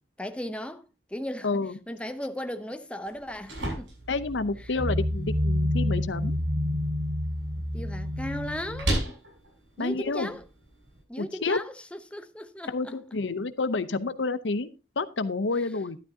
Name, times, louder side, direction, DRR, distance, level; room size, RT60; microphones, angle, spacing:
voice 1, 0.2-1.5 1.9-3.9 4.7-4.8 7.6-9.2 9.8-10.4 11.1-13.0, left 1 dB, 5° left, 0.7 m, -36 dB
voice 2, 1.4-1.8 4.1-6.3 9.8-10.3 11.2-11.6 12.7-14.7 15.0-16.0, left 3 dB, 85° left, 0.8 m, -29 dB
sound 1, 3.1-11.0, right 1 dB, 90° right, 7.4 m, -37 dB
sound 2, 4.8-8.9, left 1 dB, 25° right, 0.6 m, -28 dB
12.0 x 11.5 x 2.8 m
head